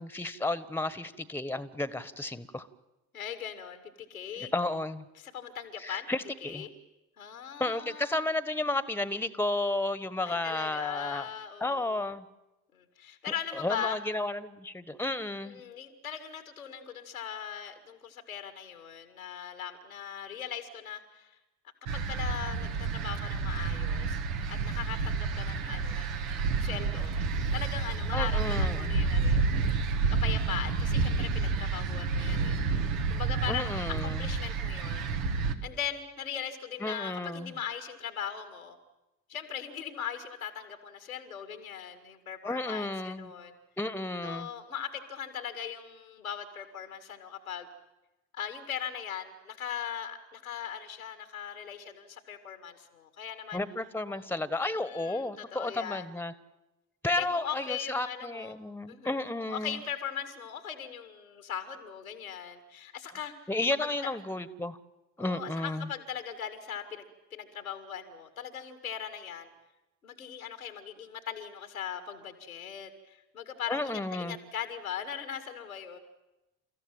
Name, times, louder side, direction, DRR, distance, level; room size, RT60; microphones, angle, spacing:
voice 1, 0.0-2.7 4.4-5.0 5.8-6.7 7.6-11.3 11.6-12.2 13.3-15.6 28.1-29.0 33.5-34.3 36.8-37.5 42.4-43.3 43.8-44.5 53.5-56.3 57.0-59.8 63.5-64.8 65.2-65.9 73.7-74.3, left 2 dB, 5° left, 15 dB, 1.4 m, -32 dB
voice 2, 3.1-4.5 5.2-6.1 6.4-6.7 7.2-8.2 10.2-12.1 12.7-14.0 15.4-21.4 21.9-24.2 24.5-27.1 27.5-29.7 30.1-32.8 33.1-35.1 35.6-38.8 39.3-43.6 44.2-47.7 48.3-53.6 54.1-54.2 54.7-56.1 57.2-58.6 58.9-59.2 59.5-63.3 63.8-64.2 65.2-67.1 67.3-69.5 70.0-76.0, left 8 dB, 85° left, 8 dB, 2.1 m, -39 dB
sound 1, 21.9-35.5, right 4 dB, 75° right, 1.7 m, -29 dB
30.0 x 14.5 x 9.1 m, 1.0 s
figure-of-eight pair, 50°, 41 cm